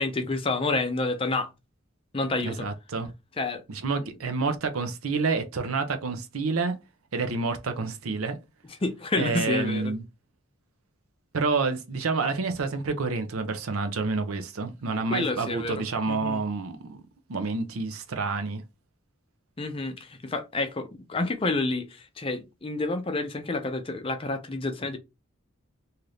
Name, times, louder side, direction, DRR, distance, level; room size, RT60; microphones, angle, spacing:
voice 1, 0.0-1.5 2.1-2.7 3.4-3.6 8.8-9.9 15.1-16.4 19.6-25.0, left 2 dB, 25° left, 0.5 m, -29 dB
voice 2, 2.4-3.1 3.7-6.8 7.1-8.4 9.2-10.0 11.3-17.0 17.3-18.6, right 4 dB, 90° right, 0.6 m, -28 dB
2.8 x 2.5 x 3.3 m
head